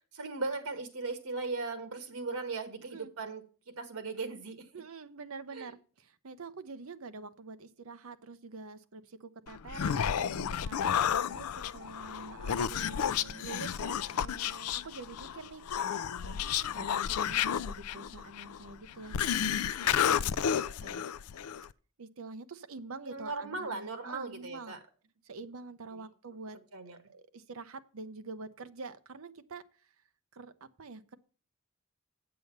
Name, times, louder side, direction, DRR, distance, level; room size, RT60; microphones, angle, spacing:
voice 1, 0.1-4.7 5.5-5.7 23.0-24.8 25.9-26.0 26.7-27.0, right 3 dB, 90° right, 8 dB, 1.6 m, -38 dB
voice 2, 4.7-15.6 16.2-21.0 22.0-24.8 25.2-26.6 26.9-29.9 30.3-31.2, right 3 dB, 75° right, 11 dB, 0.7 m, -47 dB
Human voice, 9.5-21.7, left 8 dB, 85° left, 0.4 m, -32 dB
8.0 x 7.7 x 5.3 m, 0.38 s
head